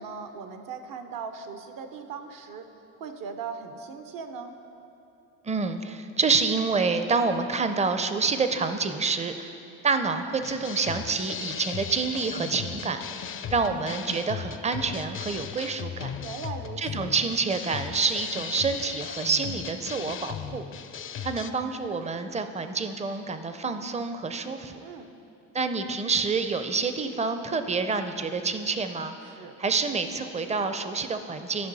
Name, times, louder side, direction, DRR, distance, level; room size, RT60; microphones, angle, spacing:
voice 1, 0.0-2.7 3.0-4.6 16.2-17.1 24.8-25.1 29.3-29.6, right 5 dB, 70° right, 7 dB, 0.8 m, -39 dB
voice 2, 5.4-9.5 9.8-13.0 13.5-16.1 16.8-20.6 21.2-24.8 25.5-29.1 29.6-31.7, right 4 dB, 20° right, 9 dB, 0.5 m, -28 dB
sound 1, 10.4-21.5, left 8 dB, 35° left, 0.4 m, -37 dB
12.5 x 5.2 x 4.0 m, 2.8 s
supercardioid pair, 85°, 36 cm